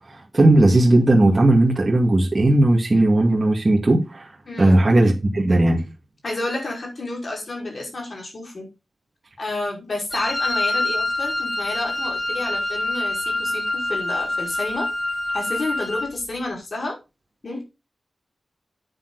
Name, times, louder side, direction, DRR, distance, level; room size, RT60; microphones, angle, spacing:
voice 1, 0.3-4.3 4.6-5.8, right 2 dB, 35° right, 2.4 m, -16 dB
voice 2, 4.5-4.8 6.2-8.7 9.4-14.9 15.3-17.0 17.4-17.6, left 2 dB, 50° left, 5.4 m, -30 dB
Wind instrument woodwind instrument, 10.1-16.1, left 2 dB, 25° left, 1.7 m, -26 dB
9.3 x 9.2 x 4.2 m
wide cardioid pair, 120°, 0 cm